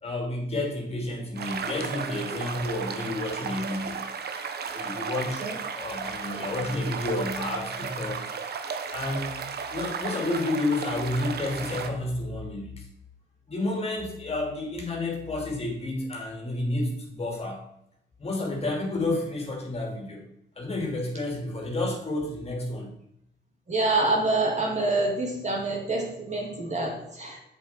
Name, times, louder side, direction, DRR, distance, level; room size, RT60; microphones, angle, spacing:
voice 1, 0.0-3.9 4.4-4.5 4.7-5.4 5.7-8.3 8.9-9.3 9.7-12.9 13.5-17.6 18.2-20.2 20.5-22.9, left 2 dB, 30° left, 1 dB, 2.8 m, -30 dB
sound 1, 1.4-11.9, right 6 dB, 55° right, 1.1 m, -34 dB
voice 2, 23.7-27.4, right 2 dB, 35° right, 0 dB, 2.6 m, -26 dB
7.8 x 7.3 x 4.4 m, 0.76 s
cardioid pair, 90°, 20 cm